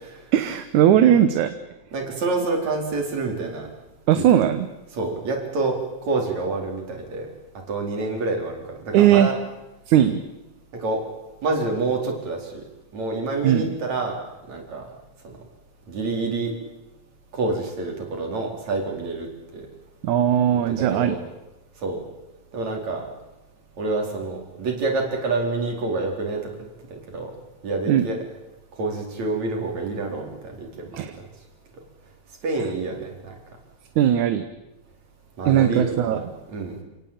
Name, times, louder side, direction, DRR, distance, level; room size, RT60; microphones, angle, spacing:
voice 1, 0.3-1.5 4.1-4.7 8.9-9.3 9.9-10.2 13.4-13.7 20.0-21.2 27.9-28.1 30.9-31.2 34.0-34.5 35.5-36.3, right 10 dB, 80° right, 9 dB, 2.5 m, -18 dB
voice 2, 1.9-3.7 4.2-4.3 4.9-7.3 7.7-9.3 10.8-11.0 11.4-12.6 12.9-14.2 14.5-14.9 15.2-15.3 15.9-16.5 17.3-19.3 19.5-19.7 20.8-21.2 21.8-22.0 22.5-23.1 23.8-27.3 27.6-28.2 28.8-31.3 32.4-33.4 35.4-36.8, right 3 dB, 65° right, 1 dB, 5.5 m, -27 dB
28.5 x 18.0 x 8.8 m, 1.0 s
omnidirectional pair, 3.4 m